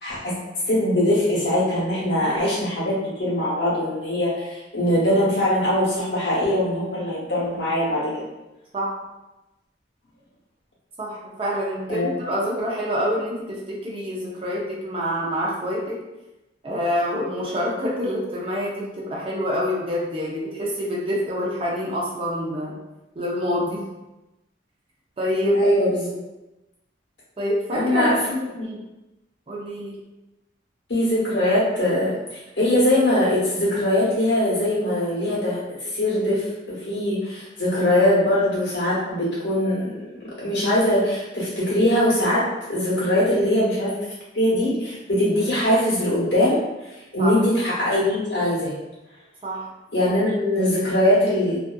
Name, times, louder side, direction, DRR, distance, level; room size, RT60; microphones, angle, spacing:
voice 1, 0.0-8.2 11.9-12.1 25.5-26.1 27.7-28.7 30.9-40.0 40.2-44.0 44.3-48.7 49.9-51.6, left 1 dB, 60° left, -7 dB, 1.0 m, -22 dB
voice 2, 11.0-16.0 16.6-22.7 23.2-23.8 25.2-25.6 27.4-28.8 29.5-30.0 43.3-43.5 47.2-47.4 49.4-49.7, equal, 30° right, -5 dB, 0.5 m, -26 dB
2.5 x 2.4 x 2.2 m, 1.0 s
head